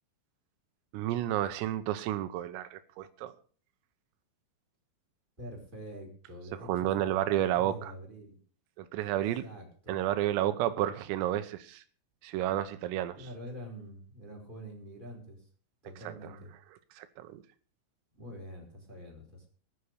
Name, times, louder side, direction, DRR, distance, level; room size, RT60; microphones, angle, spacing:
voice 1, 0.9-3.3 6.6-7.9 8.8-9.5 9.9-11.8 12.2-13.2 16.1-16.3 17.0-17.4, right 13 dB, 90° right, 11 dB, 3.7 m, -31 dB
voice 2, 5.4-8.4 9.4-10.0 13.1-15.5 15.8-16.5 18.1-19.5, equal, 10° right, 0 dB, 4.7 m, -46 dB
21.0 x 7.1 x 6.6 m, 0.43 s
omnidirectional pair, 5.8 m